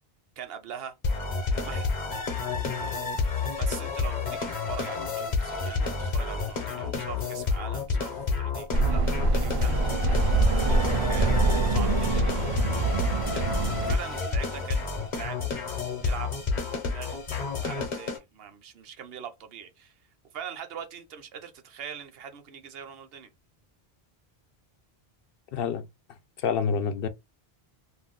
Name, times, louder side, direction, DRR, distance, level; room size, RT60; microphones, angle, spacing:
voice 1, 0.4-1.0 1.6-1.8 2.6-3.0 3.6-9.8 10.7-11.4 11.7-12.9 13.3-13.5 13.9-15.4 16.0-16.3 16.9-17.2 17.6-19.9 20.3-23.3, right 8 dB, 75° right, 0.9 m, -42 dB
sound 1, 1.0-18.2, left 4 dB, 50° left, 0.9 m, -30 dB
sound 2, 8.7-14.0, right 3 dB, 50° right, 0.4 m, -25 dB
voice 2, 25.5-27.1, left 6 dB, 70° left, 0.8 m, -29 dB
2.5 x 2.3 x 3.5 m
omnidirectional pair, 1.0 m